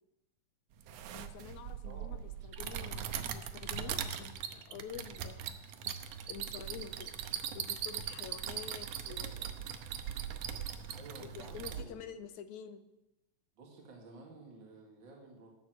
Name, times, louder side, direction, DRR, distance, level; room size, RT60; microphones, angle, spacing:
sound 1, 0.8-11.8, right 9 dB, 70° right, 1.7 m, -40 dB
voice 1, 1.1-5.6 6.3-7.1 7.5-9.7 11.2-12.8, left 8 dB, 85° left, 11 dB, 2.1 m, -48 dB
voice 2, 1.8-2.3 10.9-12.2 13.6-15.5, right 3 dB, 40° right, 0 dB, 2.6 m, -53 dB
12.5 x 6.9 x 8.1 m, 0.92 s
omnidirectional pair, 3.4 m